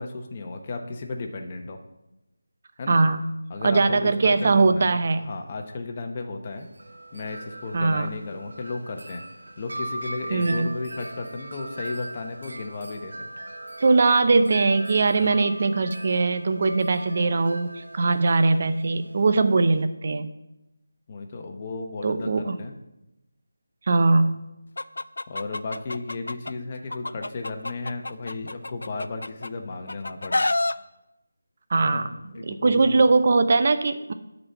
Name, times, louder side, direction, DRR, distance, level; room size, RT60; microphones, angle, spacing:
voice 1, 0.0-1.8 2.8-3.0 3.5-4.9 5.2-6.7 7.1-9.2 9.6-13.3 15.0-15.4 21.1-22.7 25.3-30.4 31.8-33.0, left 3 dB, 30° left, 3 dB, 0.9 m, -34 dB
voice 2, 2.9-3.3 3.6-5.2 7.7-8.1 10.3-10.7 13.8-20.3 22.0-22.5 23.9-24.4 31.7-34.1, right 3 dB, 40° right, 9 dB, 0.6 m, -21 dB
Wind chime, 6.5-19.9, right 1 dB, 70° right, 1.0 m, -40 dB
Chicken rooster, 24.8-26.5 26.9-29.5 29.9-30.7, left 2 dB, 75° left, 0.4 m, -28 dB
9.9 x 4.1 x 7.1 m, 0.95 s
figure-of-eight pair, 170°, 0 cm